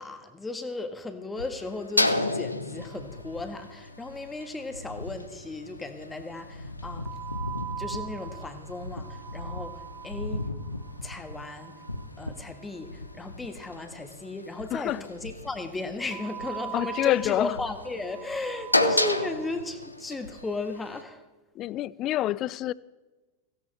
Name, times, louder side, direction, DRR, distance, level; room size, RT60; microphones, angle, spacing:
voice 1, 0.0-7.2 7.8-10.5 11.0-11.8 12.2-21.2, left 3 dB, 10° left, 1.6 m, -35 dB
sound 1, 1.4-21.0, left 2 dB, 85° left, 0.8 m, -34 dB
sound 2, 2.8-3.8 4.1-4.2 4.4-4.5 7.0-13.2 16.1-19.7, right 9 dB, 30° right, 0.6 m, -42 dB
voice 2, 16.7-17.5 21.6-22.7, left 14 dB, 35° left, 0.4 m, -27 dB
17.0 x 16.5 x 3.3 m
figure-of-eight pair, 90°, 0 cm